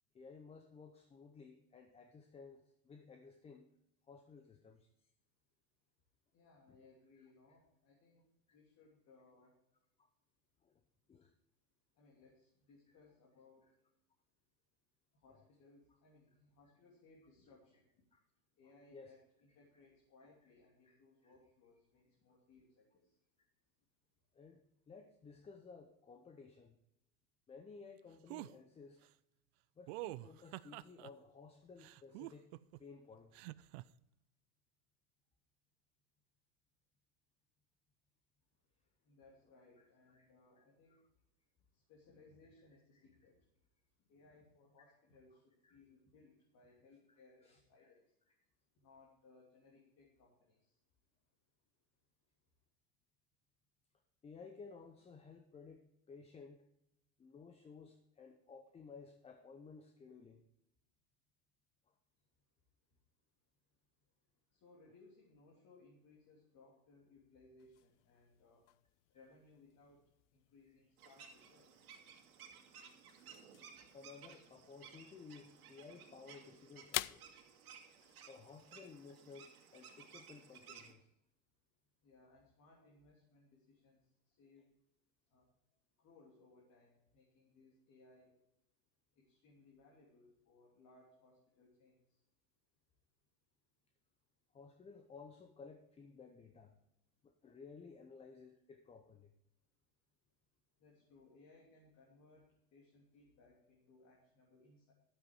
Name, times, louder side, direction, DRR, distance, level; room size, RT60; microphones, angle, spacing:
voice 1, 0.1-3.7 4.1-4.9 10.0-10.1 10.6-10.8 11.1-11.3 15.3-15.4 18.1-18.2 18.9-19.1 20.8-21.0 21.2-21.3 24.3-24.6 24.9-26.7 27.5-29.1 29.8-32.5 32.8-33.5 39.8-40.3 40.6-41.0 42.9-43.0 44.8-44.9 45.6-45.8 47.1-47.9 54.2-56.7 57.2-60.4 69.1-69.2 73.9-77.2 78.3-81.1 94.5-96.8 97.2-99.3, left 5 dB, 15° left, 7 dB, 0.7 m, -56 dB
voice 2, 6.3-8.3 8.5-9.5 12.0-13.7 15.1-17.9 18.6-23.1 39.0-41.0 41.9-43.4 44.1-48.0 48.8-50.7 64.5-68.6 69.1-70.0 70.3-71.7 82.0-84.0 84.3-84.7 85.3-85.4 86.0-88.3 89.2-92.0 100.8-104.9, left 3 dB, 40° left, -2 dB, 3.2 m, -65 dB
sound 1, 28.3-28.5 29.9-31.1 31.8-32.8 33.3-33.8, right 19 dB, 50° right, 0.5 m, -46 dB
sound 2, 67.6-79.0, left 18 dB, 55° left, 0.5 m, -51 dB
sound 3, 71.0-80.9, right 7 dB, 80° right, 2.5 m, -58 dB
12.0 x 8.0 x 4.7 m, 0.83 s
hypercardioid pair, 120°, 43 cm